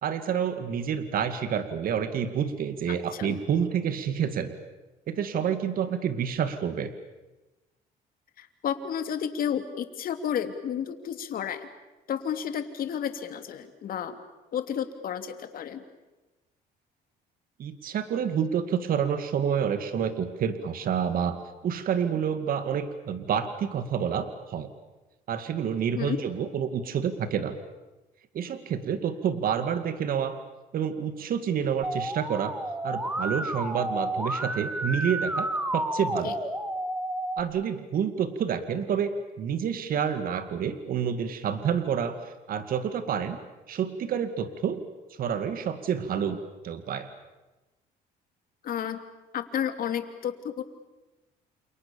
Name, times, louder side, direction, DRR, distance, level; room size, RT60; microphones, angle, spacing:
voice 1, 0.0-4.5 5.1-6.9 17.6-24.7 25.3-27.6 28.3-30.4 30.7-32.6 32.8-36.3 37.4-43.4 43.7-44.8 45.2-46.4 46.6-47.1, right 8 dB, 60° right, 10 dB, 2.3 m, -28 dB
voice 2, 2.9-3.3 8.4-11.7 12.1-14.2 14.5-15.8 25.9-26.2 36.2-36.3 48.6-49.0 49.3-50.6, left 9 dB, 60° left, 8 dB, 2.9 m, -31 dB
Musical instrument, 31.8-37.4, right 1 dB, 10° right, 2.8 m, -31 dB
29.5 x 28.5 x 7.1 m, 1.1 s
cardioid pair, 110°, 17 cm